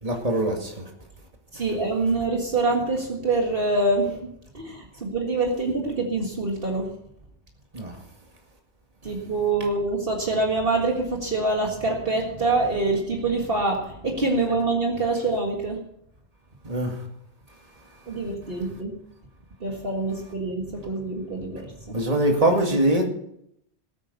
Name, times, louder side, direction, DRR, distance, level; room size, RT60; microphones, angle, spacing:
voice 1, 0.0-0.9 7.7-7.9 16.6-17.0 21.9-23.0, right 1 dB, 35° right, 2.3 m, -23 dB
voice 2, 1.5-4.3 4.5-6.9 9.0-15.8 18.1-19.0 19.6-21.9, right 3 dB, 55° right, 2.1 m, -25 dB
19.0 x 8.9 x 5.5 m
omnidirectional pair, 1.2 m